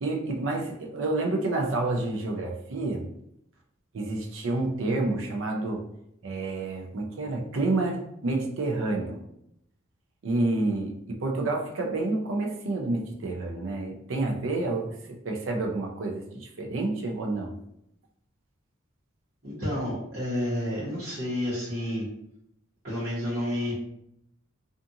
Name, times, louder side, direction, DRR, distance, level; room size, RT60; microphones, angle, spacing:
voice 1, 0.0-3.1 3.9-5.8 6.2-9.2 10.2-17.5, right 2 dB, 65° right, 1 dB, 0.5 m, -29 dB
voice 2, 19.4-22.1 22.8-23.7, left 1 dB, 45° right, -13 dB, 1.1 m, -30 dB
2.5 x 2.4 x 2.6 m, 0.75 s
head